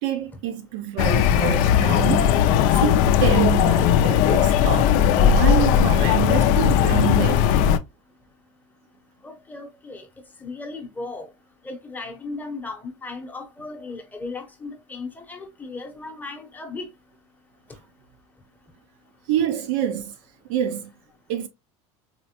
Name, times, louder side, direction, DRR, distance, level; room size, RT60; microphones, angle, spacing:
voice 1, 0.0-2.4 2.8-7.5 19.3-20.1 20.5-20.9 21.3-21.5, right 10 dB, 70° right, 0.7 m, -26 dB
sound 1, 1.0-7.8, left 9 dB, 55° left, 0.4 m, -18 dB
voice 2, 9.2-10.1 10.4-11.3 11.6-16.9, left 3 dB, 10° left, 0.8 m, -36 dB
4.2 x 2.0 x 2.8 m
supercardioid pair, 135°, 16 cm